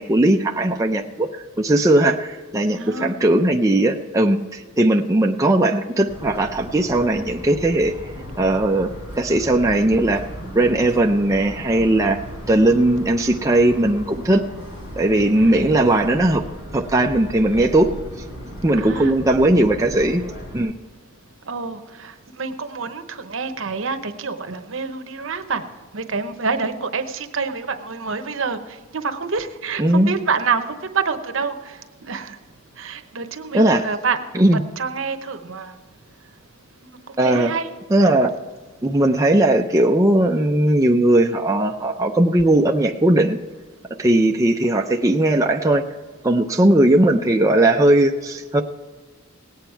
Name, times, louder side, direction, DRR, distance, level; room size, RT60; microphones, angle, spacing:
voice 1, 0.0-7.9 8.4-10.2 10.5-12.2 12.5-14.4 15.0-16.4 16.7-17.9 18.6-20.2 20.5-20.7 29.8-30.1 33.5-33.9 34.3-34.6 37.2-37.5 37.9-38.3 38.8-43.4 44.0-45.8 46.2-48.6, right 1 dB, 15° right, 2 dB, 0.5 m, -18 dB
voice 2, 2.7-3.2 15.3-15.6 18.7-19.1 21.5-25.6 25.9-28.6 28.9-32.4 32.8-34.2 34.8-35.7 36.8-37.7, right 5 dB, 65° right, 8 dB, 0.9 m, -27 dB
Motor vehicle (road) / Siren, 6.1-20.6, equal, 85° left, 4.3 m, -36 dB
18.0 x 8.8 x 4.6 m, 1.4 s
head